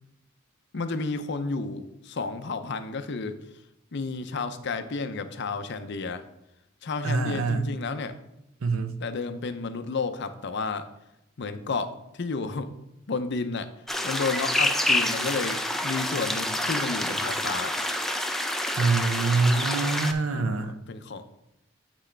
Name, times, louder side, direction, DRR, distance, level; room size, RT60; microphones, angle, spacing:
voice 1, 0.7-3.3 3.9-6.2 6.8-8.2 9.0-10.8 11.4-12.7 13.1-13.7 14.0-17.8 20.3-21.3, left 4 dB, 55° left, 10 dB, 0.6 m, -31 dB
voice 2, 7.0-7.7 8.6-9.0 18.8-20.8, right 3 dB, 85° right, 10 dB, 0.7 m, -25 dB
sound 1, 13.9-20.1, left 1 dB, ahead, 0.4 m, -27 dB
8.1 x 6.1 x 3.3 m, 0.83 s
head